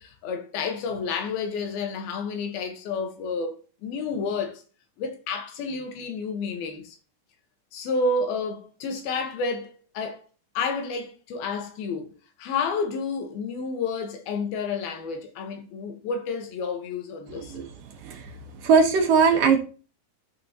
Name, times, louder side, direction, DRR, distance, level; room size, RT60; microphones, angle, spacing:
voice 1, 0.0-4.6 5.0-7.0 7.7-10.2 10.5-12.1 12.4-17.5, left 4 dB, 80° left, 3.2 m, -30 dB
voice 2, 17.3-17.6 18.0-18.3 18.6-19.6, right 5 dB, 65° right, 2.9 m, -20 dB
14.0 x 5.6 x 2.9 m
omnidirectional pair, 4.4 m